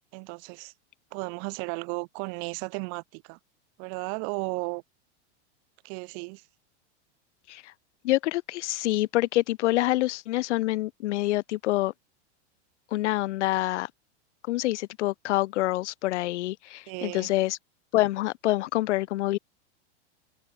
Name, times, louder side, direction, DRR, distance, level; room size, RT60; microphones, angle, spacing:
voice 1, 0.1-0.7 1.1-3.4 3.8-4.8 5.8-6.4 16.9-17.3, right 40 dB or more, 40° right, 2.0 m, -34 dB
voice 2, 8.0-11.9 12.9-13.9 14.5-17.6 17.9-19.4, left 17 dB, 85° left, 0.5 m, -26 dB
supercardioid pair, 155°, 35 cm